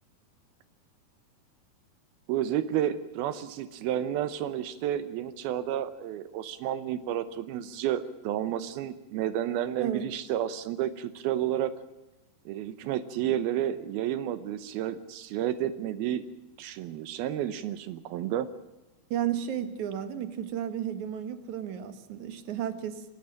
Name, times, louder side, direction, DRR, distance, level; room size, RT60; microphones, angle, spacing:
voice 1, 2.3-11.7 12.5-16.2 16.6-18.5, right 11 dB, 80° right, 13 dB, 2.7 m, -31 dB
voice 2, 19.1-23.1, right 10 dB, 60° right, 10 dB, 2.3 m, -33 dB
28.0 x 12.0 x 8.9 m, 1.0 s
omnidirectional pair, 4.4 m